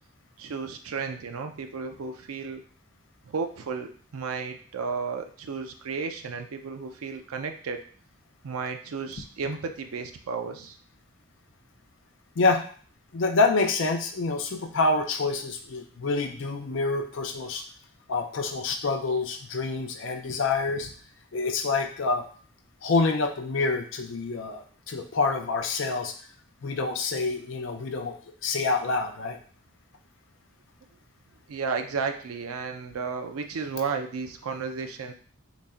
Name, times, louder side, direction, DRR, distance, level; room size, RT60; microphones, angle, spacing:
voice 1, 0.4-2.6 3.3-7.8 8.4-10.8 31.5-35.1, right 5 dB, 85° right, 6 dB, 0.5 m, -33 dB
voice 2, 12.4-12.7 13.1-17.6 18.1-20.9 21.3-22.2 22.8-26.1 26.6-28.1 28.4-29.4, left 3 dB, 60° left, 4 dB, 0.5 m, -27 dB
4.0 x 2.1 x 3.5 m, 0.43 s
head